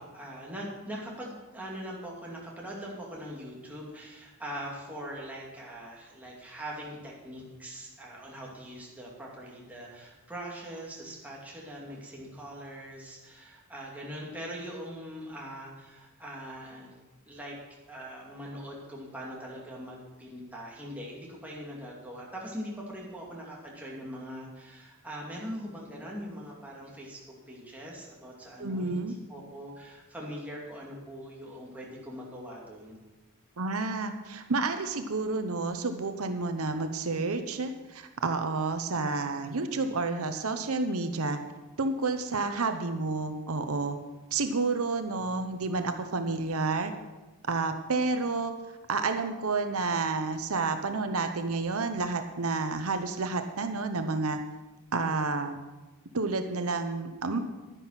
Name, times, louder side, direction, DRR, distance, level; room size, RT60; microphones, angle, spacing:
voice 1, 0.0-16.9 17.3-17.6 17.9-33.0, equal, 5° right, -4 dB, 2.5 m, -42 dB
voice 2, 28.6-29.1 33.6-41.4 41.8-44.0 44.3-46.9 47.5-48.5 48.9-54.4 54.9-55.6 56.1-57.4, right 3 dB, 80° right, 7 dB, 0.9 m, -30 dB
11.0 x 10.0 x 5.8 m, 1.1 s
head